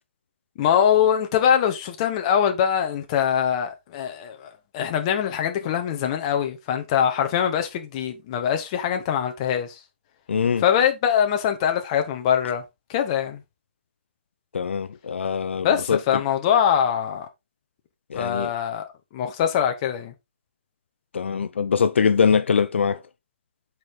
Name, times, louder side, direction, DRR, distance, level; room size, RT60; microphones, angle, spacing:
voice 1, 0.6-9.8 10.6-12.6 12.9-13.4 15.6-17.3 18.1-20.1, left 9 dB, 30° left, 1.2 m, -23 dB
voice 2, 10.3-10.6 14.5-16.0 18.1-18.5 21.1-23.0, left 6 dB, 75° left, 0.6 m, -22 dB
7.5 x 4.9 x 3.7 m
hypercardioid pair, 160°, 6 cm